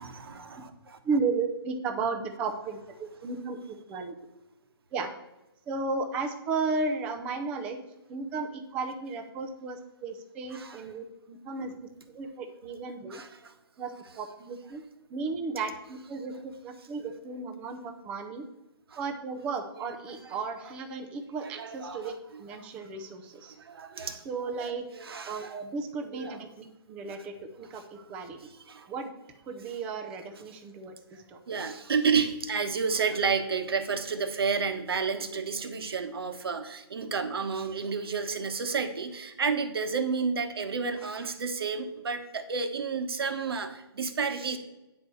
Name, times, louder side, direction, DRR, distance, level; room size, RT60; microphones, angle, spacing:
voice 1, 0.0-1.0 10.5-10.8 11.6-11.7 13.1-13.5 18.9-19.0 21.4-22.4 23.6-24.2 24.9-25.6 26.1-26.4 27.0-27.2 28.0-28.1 28.7-28.9 31.5-44.6, right 5 dB, 65° right, 8 dB, 1.3 m, -31 dB
voice 2, 1.0-4.1 4.9-5.1 5.7-7.8 8.1-11.7 12.1-13.2 13.8-13.9 14.2-14.8 15.1-18.5 19.0-22.1 22.4-23.5 24.2-24.8 25.3-28.4 28.9-29.1 29.5-31.4, right 4 dB, 10° right, 5 dB, 0.5 m, -34 dB
9.2 x 4.7 x 6.8 m, 0.97 s
hypercardioid pair, 170°, 13 cm